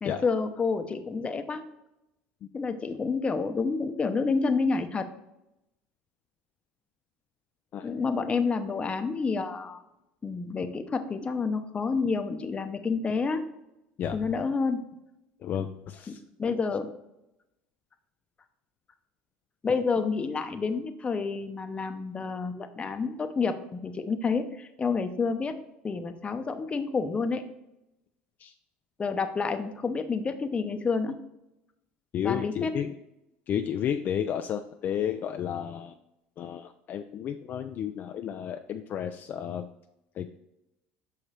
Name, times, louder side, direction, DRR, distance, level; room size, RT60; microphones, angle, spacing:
voice 1, 0.0-1.6 2.5-5.1 7.8-9.8 10.2-13.4 14.1-14.9 16.1-16.9 19.6-25.6 25.8-27.4 29.0-31.2 32.2-32.8, left 4 dB, 25° left, 8 dB, 0.7 m, -29 dB
voice 2, 14.0-14.3 15.4-16.2 28.4-28.5 32.1-32.9 33.5-35.9 36.4-39.7 40.2-40.3, left 9 dB, 45° left, 7 dB, 0.4 m, -32 dB
5.8 x 5.0 x 4.3 m, 0.89 s
supercardioid pair, 95°, 4 cm